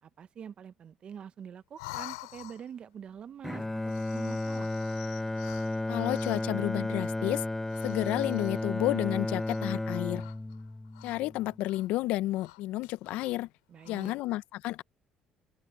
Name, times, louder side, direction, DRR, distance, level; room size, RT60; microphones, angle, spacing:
voice 1, 0.0-4.7 13.7-14.2, right 8 dB, 50° right, 1.1 m, -45 dB
sound 1, 1.7-2.9 3.8-6.6 7.6-8.8 9.4-9.8 10.1-11.3 11.6-11.9 12.3-13.4 13.7-14.2, left 22 dB, 90° left, 2.9 m, -48 dB
Bowed string instrument, 3.4-11.7, left 2 dB, 10° left, 0.3 m, -33 dB
voice 2, 5.9-7.5 7.8-10.3 11.0-13.5 13.9-14.8, left 16 dB, 75° left, 0.7 m, -31 dB
open air
hypercardioid pair, 65°, 2 cm